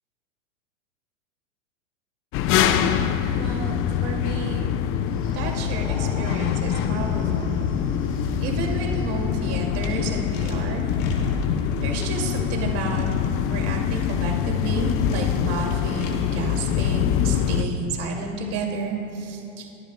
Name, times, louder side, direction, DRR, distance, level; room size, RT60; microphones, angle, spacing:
sound 1, 2.3-17.6, left 8 dB, 35° left, 0.6 m, -24 dB
voice 1, 3.4-3.7 4.0-4.7 5.3-7.6 8.4-10.9 11.8-13.1 13.5-19.7, right 4 dB, 40° right, 1 dB, 2.4 m, -31 dB
sound 2, 5.0-9.8, equal, 15° left, 3.6 m, -39 dB
sound 3, 9.8-9.9 10.3-12.2 12.7-13.3 13.8-14.3 14.9-16.2, left 3 dB, 75° left, 2.4 m, -34 dB
28.5 x 11.5 x 2.2 m, 2.8 s
hypercardioid pair, 115°, 38 cm